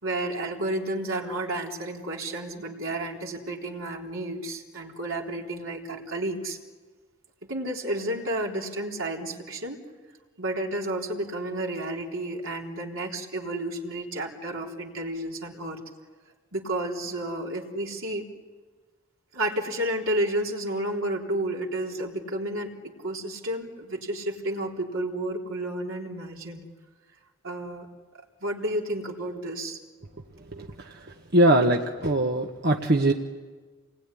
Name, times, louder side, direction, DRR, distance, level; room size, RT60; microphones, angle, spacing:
voice 1, 0.0-6.6 7.5-9.8 10.4-15.8 16.5-18.3 19.3-26.6 27.4-27.9 28.4-29.8, right 1 dB, 70° right, 0 dB, 3.8 m, -31 dB
voice 2, 31.3-33.1, right 1 dB, 50° right, 2 dB, 1.4 m, -21 dB
28.5 x 20.5 x 10.0 m, 1.4 s
head